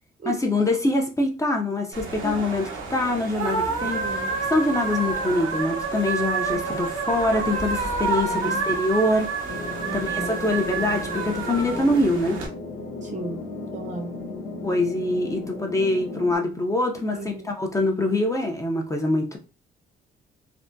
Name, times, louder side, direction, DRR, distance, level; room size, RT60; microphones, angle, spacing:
voice 1, 0.3-4.1 4.5-9.3 9.9-12.4 14.6-17.2 17.5-19.4, left 2 dB, 15° left, 0.5 m, -24 dB
sound 1, 1.9-12.5, right 4 dB, 80° right, 0.9 m, -28 dB
voice 2, 3.8-4.4 6.5-6.6 8.1-8.6 9.8-10.3 13.0-13.4 13.7-14.1 17.1-17.5, right 2 dB, 40° right, 0.7 m, -35 dB
sound 2, 9.5-16.4, left 3 dB, 80° left, 0.7 m, -35 dB
3.4 x 2.1 x 2.6 m
cardioid pair, 90°, 20 cm